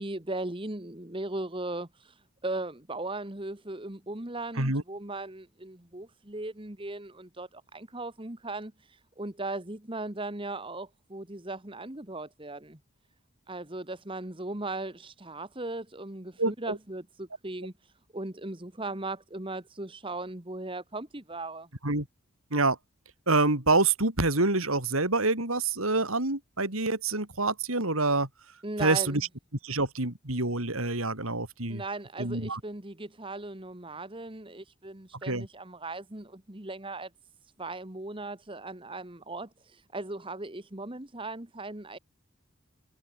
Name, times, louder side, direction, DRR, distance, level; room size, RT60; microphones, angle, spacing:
voice 1, 0.0-12.8 13.5-21.7 28.6-29.2 31.7-37.1 37.6-42.0, right 2 dB, 25° right, 1.6 m, -38 dB
voice 2, 16.4-16.8 21.8-22.0 22.5-22.8 23.3-28.3 28.8-29.2 29.6-31.8 32.2-32.6 35.3-35.5, right 3 dB, 85° right, 5.2 m, -26 dB
head